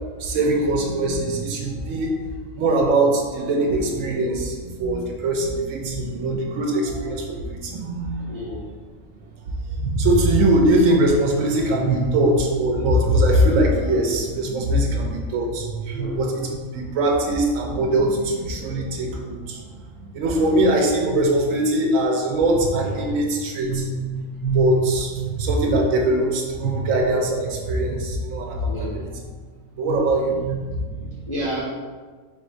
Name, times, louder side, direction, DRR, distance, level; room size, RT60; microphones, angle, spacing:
voice 1, 0.2-2.2 2.5-8.3 9.7-29.1 29.7-31.1, right 1 dB, 80° right, 1 dB, 1.0 m, -22 dB
voice 2, 8.2-8.7 16.0-16.2 28.6-29.0 31.3-31.6, equal, 20° left, -10 dB, 0.8 m, -30 dB
3.4 x 2.6 x 4.4 m, 1.4 s
omnidirectional pair, 1.4 m